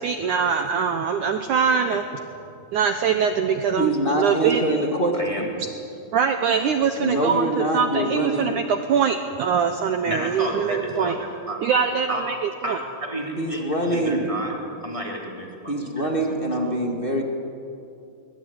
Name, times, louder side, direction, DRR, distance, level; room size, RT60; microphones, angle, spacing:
voice 1, 0.0-2.2 2.7-4.8 6.1-11.2 11.6-12.8, right 6 dB, 75° right, 7 dB, 1.8 m, -23 dB
voice 2, 3.8-5.5 7.0-8.5 13.4-14.2 15.7-17.2, right 1 dB, 35° left, 1 dB, 0.9 m, -24 dB
voice 3, 5.1-5.5 10.1-12.2 12.6-14.5 14.8-15.7 16.6-16.7, right 1 dB, 10° right, -2 dB, 2.9 m, -31 dB
24.0 x 20.5 x 9.4 m, 2.7 s
omnidirectional pair, 4.8 m